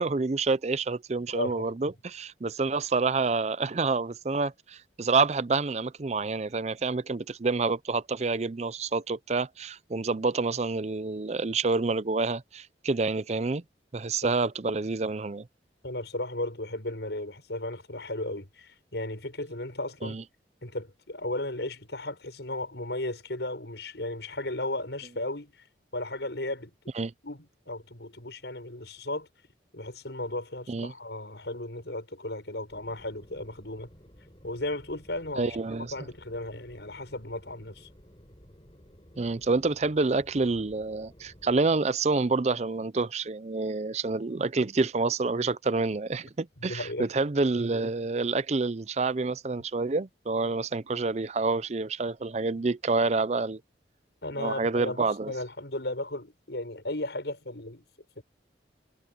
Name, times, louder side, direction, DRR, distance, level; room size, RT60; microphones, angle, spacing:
voice 1, 0.0-13.6 13.9-15.5 20.0-20.2 26.9-27.1 30.7-30.9 35.4-35.9 39.2-53.6 54.4-55.3, right 3 dB, 40° right, 0.5 m, -28 dB
voice 2, 1.3-1.9 14.2-14.3 15.8-20.2 20.6-25.5 25.9-26.7 27.2-29.3 29.7-33.9 34.4-37.9 46.7-47.1 54.2-57.8 58.2-58.3, left 1 dB, 80° left, 5.9 m, -35 dB
sound 1, 32.7-41.6, equal, 30° left, 7.1 m, -54 dB
head